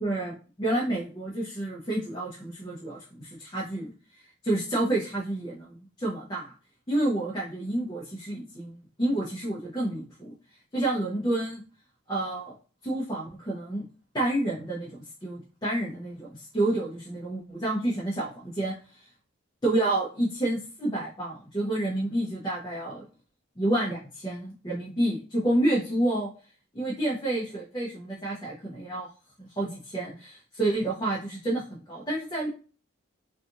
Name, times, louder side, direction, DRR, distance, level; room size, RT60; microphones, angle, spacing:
voice 1, 0.0-3.9 4.4-6.5 6.9-10.3 10.7-11.6 12.1-12.5 12.8-13.8 14.1-18.7 19.6-23.0 23.6-26.3 26.7-29.1 29.4-32.5, right 1 dB, 20° left, -6 dB, 0.6 m, -29 dB
2.8 x 2.4 x 2.5 m, 0.38 s
head